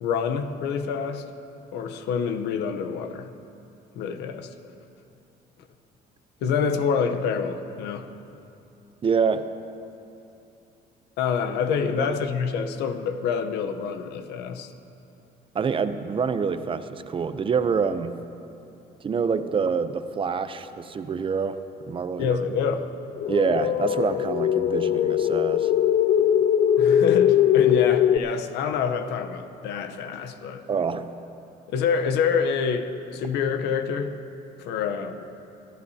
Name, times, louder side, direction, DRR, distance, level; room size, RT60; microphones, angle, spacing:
voice 1, 0.0-1.2 1.7-3.3 3.9-4.5 6.4-8.1 11.2-14.7 22.2-22.9 26.8-30.6 31.7-34.1 34.6-35.2, left 6 dB, 85° left, 7 dB, 0.9 m, -27 dB
voice 2, 9.0-9.5 11.9-12.2 15.5-18.2 19.0-21.6 21.9-22.4 23.3-25.7 30.7-31.1, right 5 dB, 30° right, 11 dB, 0.6 m, -26 dB
sound 1, 23.2-28.2, left 10 dB, 50° left, 0.4 m, -21 dB
25.0 x 14.0 x 2.8 m, 2.7 s
cardioid pair, 110°, 17 cm